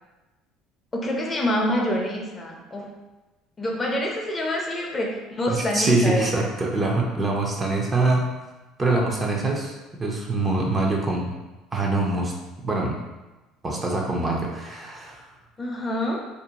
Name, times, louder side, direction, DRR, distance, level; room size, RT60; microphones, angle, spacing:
voice 1, 0.9-2.9 3.6-6.4 15.6-16.2, left 1 dB, 25° left, 0 dB, 0.5 m, -26 dB
voice 2, 5.5-8.3 8.8-11.3 11.7-12.3 12.6-13.0 13.6-15.2, right 2 dB, 25° right, 0 dB, 0.5 m, -24 dB
2.5 x 2.1 x 2.8 m, 1.1 s
supercardioid pair, 90°, 0 cm